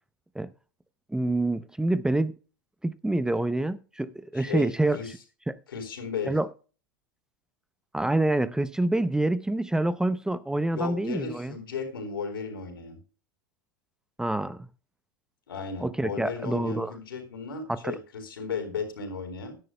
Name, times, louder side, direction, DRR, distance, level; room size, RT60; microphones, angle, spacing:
voice 1, 1.1-2.3 2.8-5.0 5.5-5.6 6.3-6.5 7.9-11.6 14.2-14.7 15.8-16.9 17.7-18.0, right 2 dB, 5° right, 0.6 m, -27 dB
voice 2, 4.3-5.1 5.7-6.3 10.7-13.0 15.5-19.5, left 5 dB, 85° left, 4.1 m, -35 dB
16.5 x 11.0 x 2.2 m
hypercardioid pair, 100°, 12 cm